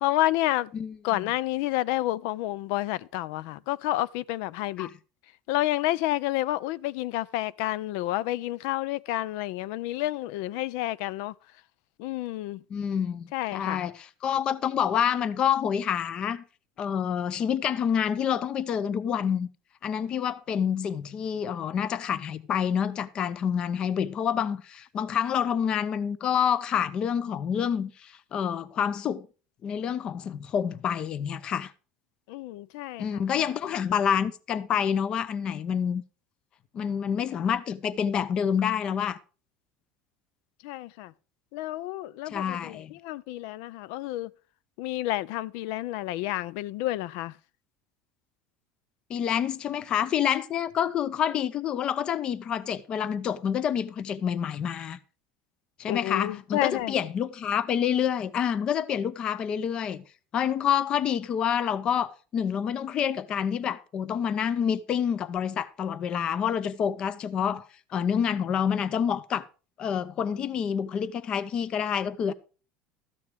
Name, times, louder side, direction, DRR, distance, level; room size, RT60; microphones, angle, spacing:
voice 1, 0.0-0.7 1.0-4.9 5.5-11.3 12.0-12.6 13.3-13.9 32.3-33.4 40.6-41.1 41.5-44.3 44.8-47.3 55.9-56.9, left 16 dB, 75° left, 0.5 m, -30 dB
voice 2, 0.7-1.2 4.8-4.9 12.7-16.4 16.8-19.5 19.8-29.3 29.6-31.7 33.0-36.0 36.7-39.2 42.3-42.9 49.1-55.0 55.8-60.0 60.3-69.4 69.8-72.3, left 8 dB, 40° left, 0.7 m, -28 dB
13.0 x 6.6 x 5.0 m
supercardioid pair, 125°, 2 cm